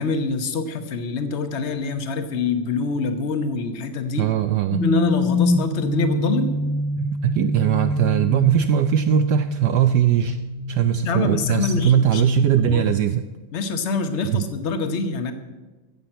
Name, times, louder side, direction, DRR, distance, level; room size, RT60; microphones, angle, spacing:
voice 1, 0.0-4.3 4.8-6.5 11.0-12.9 13.5-15.3, left 3 dB, 45° left, 7 dB, 1.0 m, -25 dB
voice 2, 4.2-4.8 7.0-10.4 10.7-13.2 14.3-14.4, right 11 dB, 80° right, 10 dB, 0.9 m, -20 dB
sound 1, 4.7-12.9, left 2 dB, 90° left, 2.9 m, -26 dB
15.0 x 5.9 x 7.9 m, 1.2 s
omnidirectional pair, 2.3 m